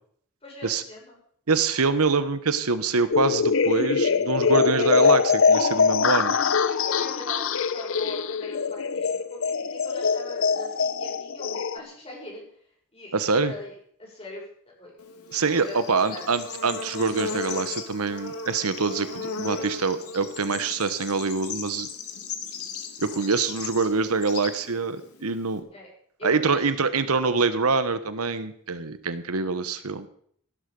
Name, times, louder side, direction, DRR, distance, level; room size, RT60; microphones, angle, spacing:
voice 1, 0.4-1.2 4.6-4.8 6.3-12.4 12.9-13.7 14.0-14.4 14.8-16.2 25.7-25.9 26.2-26.6, left 1 dB, 25° left, -3 dB, 6.8 m, -41 dB
voice 2, 1.5-6.3 13.1-13.5 15.3-21.9 23.0-25.6 26.2-30.1, right 4 dB, 85° right, 12 dB, 1.1 m, -25 dB
sound 1, 3.1-11.8, left 5 dB, 60° left, 0.7 m, -23 dB
Bird / Insect, 15.0-25.6, left 5 dB, 90° left, 2.4 m, -36 dB
16.0 x 11.5 x 5.3 m, 0.64 s
head